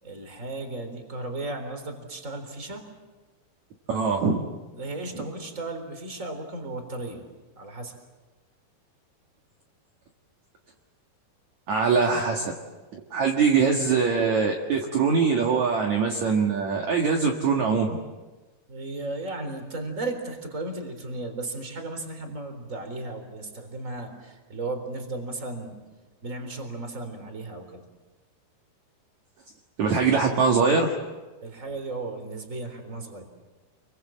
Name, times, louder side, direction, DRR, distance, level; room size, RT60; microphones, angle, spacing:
voice 1, 0.0-2.8 4.7-7.3 7.6-8.0 18.7-25.8 26.2-27.8 31.4-33.3, right 2 dB, 20° right, 6 dB, 3.8 m, -35 dB
voice 2, 3.9-4.4 11.7-12.5 12.9-17.9 29.8-30.9, right 5 dB, 55° right, 1 dB, 2.8 m, -22 dB
29.5 x 24.0 x 7.5 m, 1.2 s
omnidirectional pair, 4.6 m